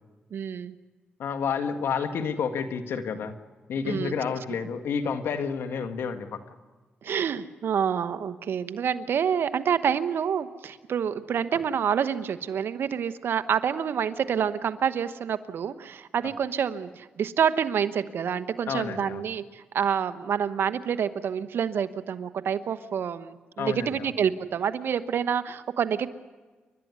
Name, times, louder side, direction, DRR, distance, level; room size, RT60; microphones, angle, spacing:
voice 1, 0.3-0.7 3.8-4.1 7.0-26.1, right 8 dB, 70° right, 12 dB, 1.1 m, -27 dB
voice 2, 1.2-3.3 3.7-6.4 18.7-19.2 23.6-24.1, left 6 dB, 80° left, 8 dB, 1.7 m, -30 dB
29.5 x 12.5 x 9.6 m, 1.3 s
cardioid pair, 65°, 4 cm